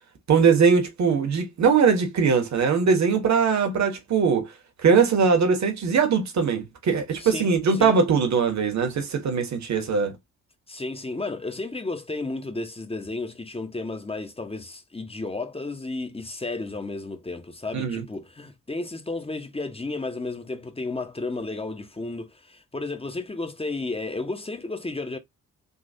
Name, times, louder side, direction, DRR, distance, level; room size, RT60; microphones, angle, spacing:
voice 1, 0.3-4.5 4.8-10.2 17.7-18.0, right 5 dB, 45° right, 1.3 m, -21 dB
voice 2, 7.2-8.0 10.7-25.2, left 3 dB, 15° left, 1.0 m, -33 dB
3.8 x 2.8 x 2.7 m
hypercardioid pair, 45°, 39 cm